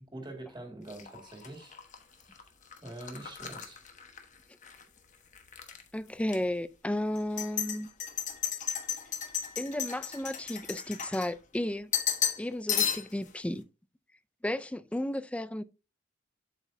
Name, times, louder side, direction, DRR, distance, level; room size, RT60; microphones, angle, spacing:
voice 1, 0.1-1.8 2.2-2.5 2.8-3.8, right 1 dB, 20° right, 1.9 m, -45 dB
sound 1, 0.9-4.8 5.1-5.8 6.3-6.4 7.2-11.6 11.9-12.4 12.7-13.3, left 8 dB, 40° left, 1.1 m, -34 dB
voice 2, 5.9-7.9 9.6-11.9 12.4-13.6 14.4-15.6, left 1 dB, 5° left, 0.3 m, -33 dB
7.9 x 7.0 x 2.6 m
head